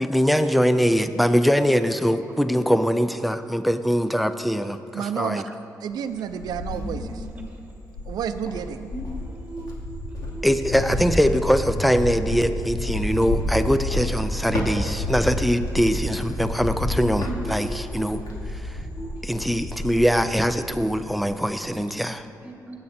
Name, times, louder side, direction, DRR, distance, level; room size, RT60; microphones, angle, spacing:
voice 1, 0.0-5.5 10.4-18.2 18.5-18.8 19.2-22.3, equal, ahead, 10 dB, 0.4 m, -22 dB
voice 2, 4.9-5.4 5.8-7.2 8.1-8.9, right 8 dB, 75° right, 7 dB, 0.5 m, -30 dB
Cricket, 5.9-7.4 7.9-20.9 21.2-21.7, left 1 dB, 70° left, 2.7 m, -30 dB
voice 3, 6.7-7.4 8.9-9.7 10.1-10.4 13.1-13.3 16.9-18.5 19.0-19.1 21.9-22.1 22.4-22.7, right 1 dB, 20° right, 1 dB, 1.9 m, -37 dB
19.5 x 8.7 x 4.3 m, 2.6 s
cardioid pair, 155°, 7 cm